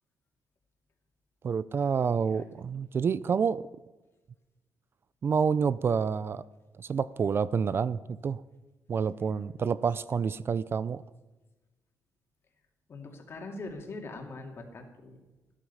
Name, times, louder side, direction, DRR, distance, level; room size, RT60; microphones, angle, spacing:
voice 1, 1.4-3.6 5.2-6.4 6.8-8.4 8.9-11.0, right 6 dB, 40° right, 17 dB, 0.4 m, -28 dB
voice 2, 12.9-15.2, left 2 dB, 45° left, 3 dB, 2.5 m, -42 dB
14.0 x 12.5 x 5.6 m, 1.1 s
cardioid pair, 125°, 6 cm